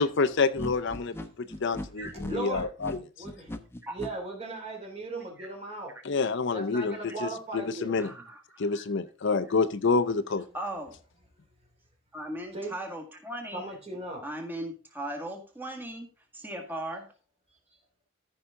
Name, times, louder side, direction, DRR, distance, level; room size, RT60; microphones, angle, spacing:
voice 1, 0.0-3.0 6.0-8.1 8.6-10.5, left 4 dB, 60° left, 13 dB, 0.6 m, -28 dB
sound 1, 0.6-4.1, left 1 dB, 10° left, 0.8 m, -38 dB
voice 2, 2.3-2.7 3.2-3.6 3.9-5.9 6.5-7.9 12.5-12.7 13.5-14.2, right 2 dB, 30° right, 1 dB, 3.0 m, -37 dB
voice 3, 7.9-8.9 10.5-11.0 12.1-13.7 14.2-17.1, right 1 dB, 10° right, 2 dB, 1.8 m, -38 dB
14.0 x 5.7 x 3.7 m, 0.37 s
head